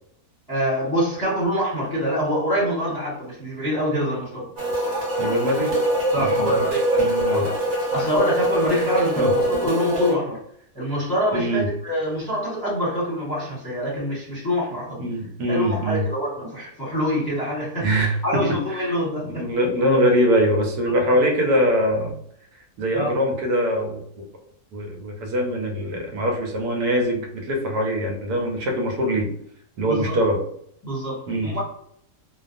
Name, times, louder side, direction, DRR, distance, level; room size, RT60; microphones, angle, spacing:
voice 1, 0.5-4.5 6.1-7.6 7.9-10.4 10.7-15.0 15.5-19.5 20.9-21.0 22.9-23.2 29.9-30.2 30.8-31.6, equal, 15° left, -9 dB, 0.9 m, -25 dB
sound 1, 4.6-10.1, right 1 dB, 60° right, 1.2 m, -23 dB
voice 2, 5.2-5.8 6.2-6.7 7.0-7.5 9.2-9.3 11.3-11.7 15.0-16.0 17.8-18.9 19.2-22.1 22.8-24.3 24.7-29.3 29.8-30.4 31.3-31.5, equal, 80° right, 2 dB, 1.1 m, -23 dB
2.6 x 2.2 x 2.5 m, 0.68 s
omnidirectional pair, 1.7 m